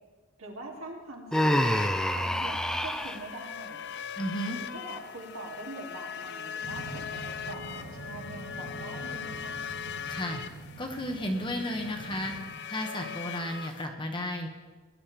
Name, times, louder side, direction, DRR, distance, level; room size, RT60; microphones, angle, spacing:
voice 1, 0.4-3.8 4.7-9.6, right 2 dB, 75° right, -1 dB, 2.6 m, -43 dB
sound 1, 1.3-13.9, left 7 dB, 50° left, 0.5 m, -40 dB
Human voice, 1.3-3.2, equal, 5° left, 0.5 m, -27 dB
voice 2, 4.2-4.6 10.1-10.4 10.8-12.3 12.7-14.5, left 1 dB, 20° left, 3 dB, 1.2 m, -33 dB
sound 2, 6.6-12.4, right 2 dB, 70° left, 4.9 m, -44 dB
19.0 x 11.0 x 3.4 m, 1.3 s
head